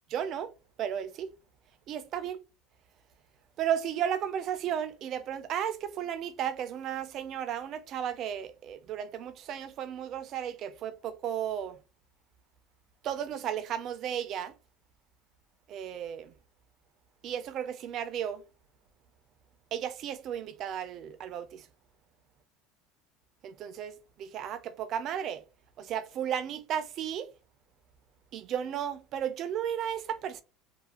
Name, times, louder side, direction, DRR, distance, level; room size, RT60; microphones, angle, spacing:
voice 1, 0.1-0.5 0.8-1.3 1.9-2.4 3.6-11.8 13.0-14.5 15.7-16.3 17.2-18.4 19.7-21.7 23.4-25.4 25.8-27.3 28.3-30.4, right 9 dB, 40° right, 0.3 m, -34 dB
2.5 x 2.4 x 2.8 m
cardioid pair, 155°, 0 cm